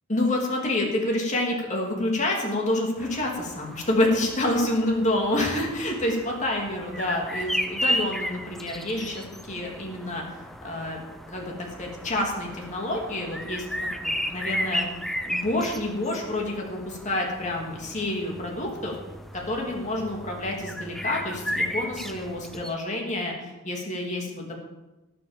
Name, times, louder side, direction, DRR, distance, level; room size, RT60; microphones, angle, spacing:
voice 1, 0.1-10.2 10.6-13.7 14.0-14.8 15.2-19.0 19.3-24.6, left 1 dB, 35° left, 0 dB, 2.8 m, -28 dB
sound 1, 3.0-22.7, equal, ahead, 0.5 m, -34 dB
18.0 x 6.9 x 7.4 m, 1.1 s
head